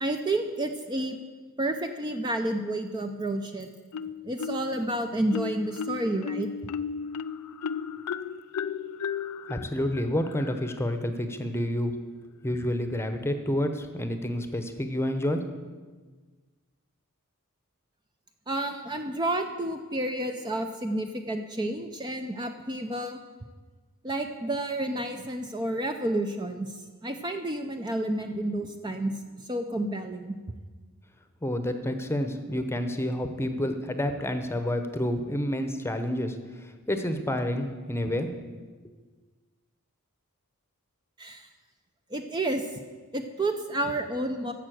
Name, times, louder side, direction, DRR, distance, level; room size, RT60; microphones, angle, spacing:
voice 1, 0.0-1.2 1.6-3.7 4.2-6.5 18.5-23.2 24.0-29.2 29.4-30.4 41.2-41.5 42.1-42.7 43.1-44.5, right 1 dB, 20° right, 5 dB, 0.6 m, -30 dB
Marimba xylophone, 3.9-4.8 5.3-10.8, left 6 dB, 85° left, 0.4 m, -35 dB
voice 2, 9.5-11.9 12.4-15.4 31.4-38.3, left 1 dB, 10° left, 8 dB, 0.9 m, -29 dB
11.0 x 7.5 x 7.7 m, 1.4 s
head